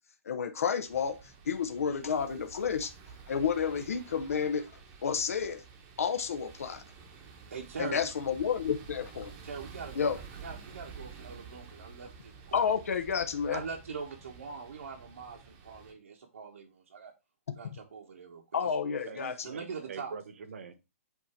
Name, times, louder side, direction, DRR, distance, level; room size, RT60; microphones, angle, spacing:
voice 1, 0.3-1.2 1.5-2.9 3.3-4.7 5.0-5.6 6.0-6.8 7.8-9.3 10.0-10.2 12.5-13.6 18.5-19.5, left 6 dB, 75° left, 0.8 m, -30 dB
sound 1, 0.9-15.9, right 5 dB, 20° right, 0.9 m, -50 dB
voice 2, 7.5-8.1 9.4-10.1 10.4-12.6 13.5-17.1 17.5-18.7 19.2-20.1, right 5 dB, 85° right, 1.2 m, -43 dB
voice 3, 19.5-20.7, right 5 dB, 60° right, 1.0 m, -43 dB
8.1 x 2.8 x 4.3 m
hypercardioid pair, 170°, 8 cm